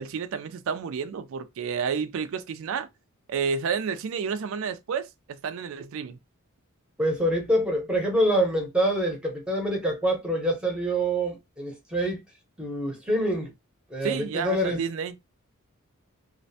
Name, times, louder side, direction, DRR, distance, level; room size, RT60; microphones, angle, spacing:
voice 1, 0.0-2.9 3.3-5.1 5.4-6.2 14.0-15.2, right 6 dB, 65° right, 0.3 m, -30 dB
voice 2, 7.0-12.2 12.6-13.5 13.9-14.8, right 1 dB, 5° right, 0.7 m, -26 dB
2.4 x 2.1 x 2.6 m
head